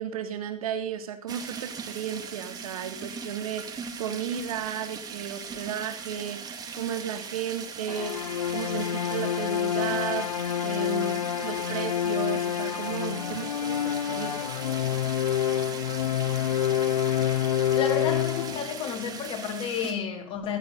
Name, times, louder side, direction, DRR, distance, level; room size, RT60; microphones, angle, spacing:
voice 1, 0.0-8.3 8.5-10.3 10.6-14.4, right 8 dB, 70° right, 3.0 m, -34 dB
sound 1, 1.3-19.9, right 6 dB, 20° right, 2.2 m, -40 dB
sound 2, 7.9-19.0, left 10 dB, 80° left, 0.9 m, -28 dB
voice 2, 17.8-20.6, left 7 dB, 30° left, 3.6 m, -31 dB
16.0 x 14.0 x 4.1 m
hypercardioid pair, 130°, 19 cm